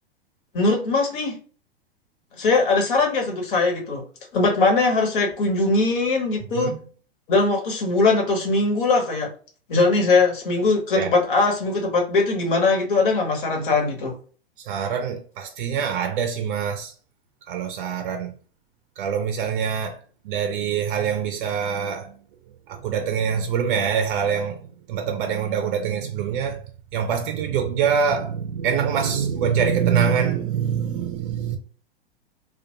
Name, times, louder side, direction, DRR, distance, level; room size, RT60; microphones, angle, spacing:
voice 1, 0.5-1.4 2.4-4.0 4.3-6.7 7.3-9.3 9.7-14.1, left 3 dB, 60° left, 1.0 m, -21 dB
voice 2, 14.7-16.9 17.5-18.3 19.0-20.0 20.2-22.1 22.7-24.6 24.9-26.7 26.9-31.6, right 7 dB, 55° right, 0.5 m, -24 dB
2.2 x 2.2 x 2.8 m
figure-of-eight pair, 100°, 30 cm